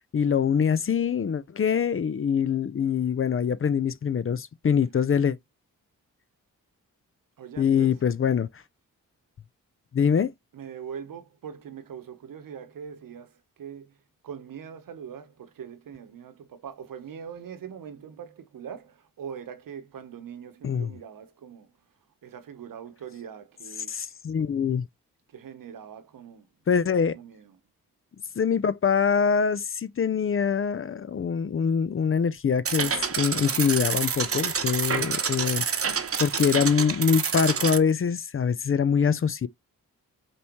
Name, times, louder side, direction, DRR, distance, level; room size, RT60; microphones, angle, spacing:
voice 1, 0.1-5.4 7.6-8.5 9.9-10.3 20.6-20.9 23.9-24.8 26.7-27.1 28.4-39.5, left 7 dB, 40° left, 0.5 m, -24 dB
voice 2, 7.4-7.9 10.5-14.0 14.2-21.8 22.2-24.1 25.3-26.5 27.1-27.6, right 7 dB, 70° right, 1.0 m, -42 dB
sound 1, 32.6-37.8, right 6 dB, 40° right, 0.9 m, -28 dB
5.3 x 2.8 x 3.0 m
supercardioid pair, 45°, 35 cm